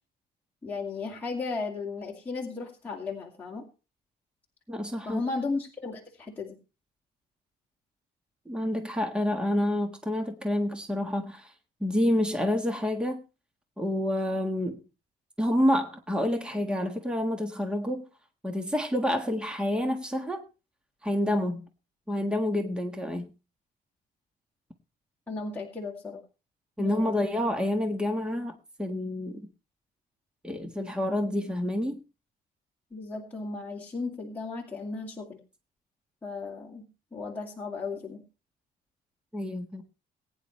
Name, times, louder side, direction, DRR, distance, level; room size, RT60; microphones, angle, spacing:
voice 1, 0.6-3.6 5.0-6.6 25.3-26.2 26.8-27.3 32.9-35.4 36.2-36.9 37.1-38.2, left 3 dB, 10° left, -3 dB, 2.4 m, -35 dB
voice 2, 4.7-5.2 8.5-11.5 11.8-13.2 13.8-14.8 15.4-18.1 18.4-20.4 21.0-21.7 22.1-23.3 26.8-29.4 30.4-32.0 39.3-39.8, left 1 dB, 5° right, 5 dB, 1.5 m, -28 dB
21.0 x 9.9 x 3.2 m, 0.32 s
cardioid pair, 160°, 17 cm